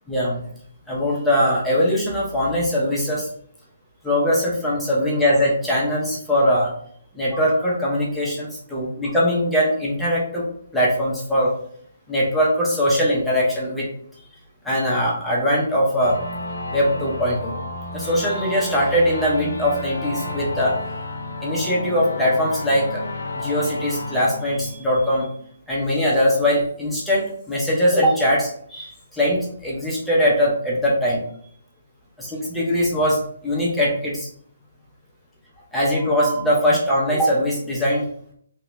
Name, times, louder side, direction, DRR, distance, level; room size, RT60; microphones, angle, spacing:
voice 1, 0.1-0.4 0.9-3.3 4.0-6.7 7.1-10.4 10.7-11.5 12.1-13.9 14.6-16.2 16.7-17.5 17.9-20.8 21.4-23.0 23.3-25.3 25.7-31.2 32.2-34.3 35.7-38.3, equal, ahead, -7 dB, 0.8 m, -21 dB
sound 1, 16.0-25.3, left 2 dB, 75° left, 0.7 m, -31 dB
3.0 x 2.7 x 3.4 m, 0.62 s
hypercardioid pair, 165°, 0 cm